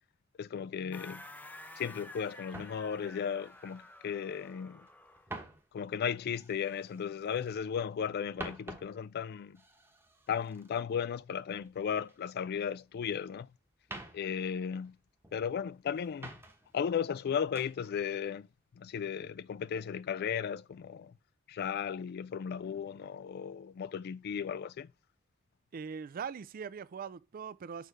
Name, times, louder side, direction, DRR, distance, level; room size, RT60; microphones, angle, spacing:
voice 1, 0.4-1.2 1.8-4.9 5.7-9.6 10.3-13.5 14.1-15.0 15.3-16.3 16.7-18.5 18.7-21.1 21.5-24.9, left 7 dB, 50° left, 0.3 m, -35 dB
sound 1, 0.9-5.3, left 1 dB, 10° left, 0.6 m, -51 dB
sound 2, 2.5-4.5 4.8-7.6 8.0-12.2 12.5-13.4 13.7-15.5 15.9-16.8 17.1-17.8 18.3-18.6, right 2 dB, 10° right, 1.0 m, -50 dB
voice 2, 25.7-27.9, right 6 dB, 45° right, 0.4 m, -41 dB
6.6 x 3.2 x 4.9 m
head